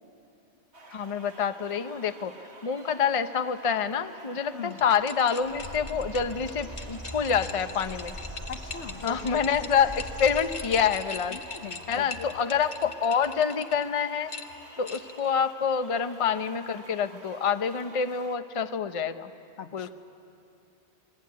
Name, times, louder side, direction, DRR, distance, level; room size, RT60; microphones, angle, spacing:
sound 1, 0.7-18.4, right 3 dB, 70° right, 2.1 m, -50 dB
voice 1, 0.9-2.3 2.6-8.2 9.0-11.4 11.9-14.3 14.8-19.3 19.7-19.9, left 7 dB, 35° left, 9 dB, 0.7 m, -27 dB
sound 2, 4.7-13.8 14.3-15.3, left 4 dB, 55° left, 1.5 m, -41 dB
Bird, 5.4-11.0, right 1 dB, 30° right, 5.4 m, -41 dB
voice 2, 8.5-9.4 11.3-12.3 19.6-19.9, left 8 dB, 80° left, 9 dB, 1.3 m, -41 dB
27.5 x 21.0 x 9.5 m, 2.6 s
omnidirectional pair, 1.2 m